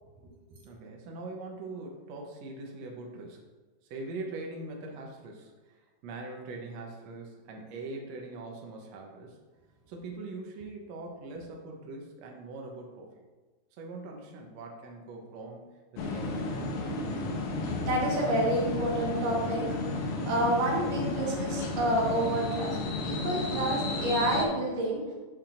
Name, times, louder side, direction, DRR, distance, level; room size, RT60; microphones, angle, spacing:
voice 1, 0.6-3.5 3.8-9.4 9.9-13.1 13.7-16.6, right 2 dB, 65° right, 0 dB, 1.9 m, -42 dB
sound 1, 16.0-24.5, left 2 dB, 75° left, 2.1 m, -33 dB
voice 2, 17.9-19.7 20.3-22.8 23.0-25.0, right 1 dB, 90° right, -3 dB, 3.2 m, -28 dB
8.9 x 6.5 x 2.6 m, 1.3 s
omnidirectional pair, 3.7 m